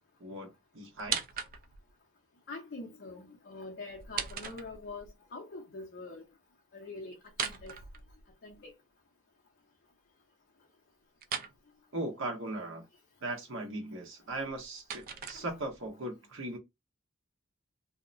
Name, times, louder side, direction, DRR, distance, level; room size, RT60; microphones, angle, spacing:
voice 1, 0.2-1.2 11.9-12.8 13.2-16.6, right 2 dB, 65° right, 1.0 m, -38 dB
sound 1, 1.0-1.9 3.9-5.1 7.3-8.6 11.2-11.6 14.3-15.9, right 7 dB, 45° right, 0.4 m, -39 dB
voice 2, 2.5-5.1 5.3-6.2 6.7-7.1 7.4-7.8 8.4-8.7 15.3-15.5, left 3 dB, 50° left, 0.6 m, -44 dB
2.7 x 2.1 x 2.4 m
head